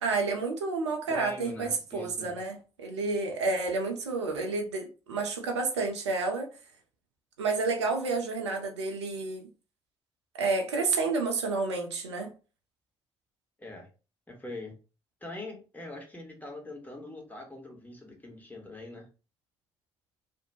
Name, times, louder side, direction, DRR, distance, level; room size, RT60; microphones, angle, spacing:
voice 1, 0.0-6.5 7.4-9.4 10.4-12.3, right 3 dB, 85° right, 0.5 m, -30 dB
voice 2, 1.1-2.4 13.6-13.9 14.3-14.7 15.2-19.1, left 2 dB, 10° left, 1.2 m, -43 dB
2.5 x 2.1 x 2.8 m
figure-of-eight pair, 45°, 14 cm